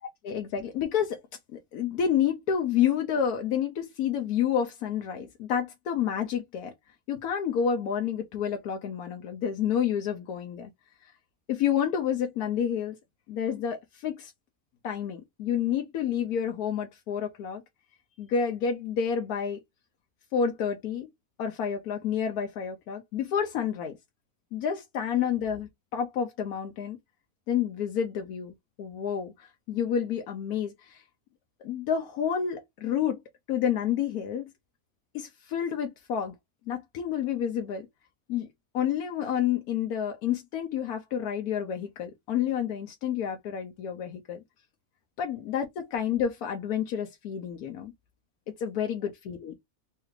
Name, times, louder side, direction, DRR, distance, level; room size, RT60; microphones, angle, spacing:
voice 1, 0.2-1.2 1.5-6.7 7.1-10.7 11.0-11.1 11.5-13.0 13.3-14.3 14.8-17.6 18.2-19.6 20.3-21.1 21.4-23.9 24.5-27.0 27.5-31.0 31.6-33.2 33.5-34.5 35.1-36.3 36.7-37.9 38.3-38.5 38.7-44.4 45.2-47.9 48.6-49.5, left 8 dB, 85° left, 1.1 m, -29 dB
3.2 x 2.4 x 3.1 m
omnidirectional pair, 1.6 m